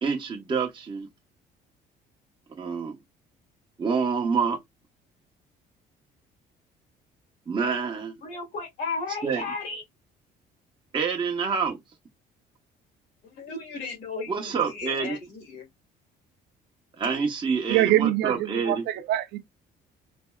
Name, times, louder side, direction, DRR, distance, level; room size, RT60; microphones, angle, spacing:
voice 1, 0.0-1.1 2.5-3.0 3.8-4.6 7.5-8.2 9.2-9.4 10.9-11.8 14.3-15.2 17.0-18.8, right 5 dB, 30° right, 1.0 m, -27 dB
voice 2, 8.2-9.8 13.2-15.7, left 4 dB, 80° left, 2.2 m, -35 dB
voice 3, 17.7-19.4, right 14 dB, 80° right, 0.6 m, -24 dB
4.3 x 2.7 x 2.3 m
cardioid pair, 110°, 17 cm